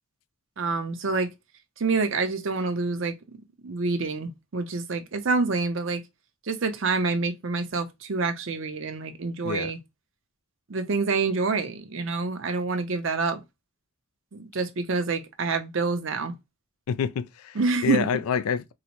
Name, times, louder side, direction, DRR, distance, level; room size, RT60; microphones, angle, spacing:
voice 1, 0.6-1.3 1.8-3.1 3.6-6.0 6.5-9.8 10.7-13.4 14.3-16.3 17.6-18.1, right 4 dB, 60° right, 0.6 m, -27 dB
voice 2, 9.4-9.7 16.9-18.7, left 7 dB, 85° left, 0.3 m, -28 dB
3.9 x 2.1 x 2.9 m
head